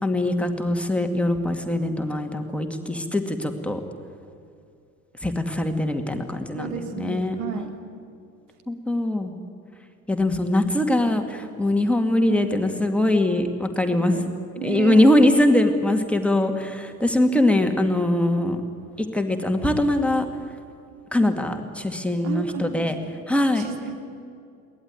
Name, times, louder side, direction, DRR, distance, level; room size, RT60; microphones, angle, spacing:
voice 1, 0.0-3.8 5.2-7.7 8.7-9.3 10.1-14.2 14.6-18.6 19.0-20.3 21.1-22.9 23.3-23.7, left 1 dB, 5° left, 4 dB, 2.2 m, -22 dB
voice 2, 6.5-7.7 12.3-12.5 13.9-14.3 14.6-15.1 21.2-21.3 22.2-22.9 23.6-23.9, right 8 dB, 60° right, 5 dB, 2.9 m, -32 dB
22.5 x 18.0 x 9.5 m, 2.4 s
figure-of-eight pair, 65°, 43 cm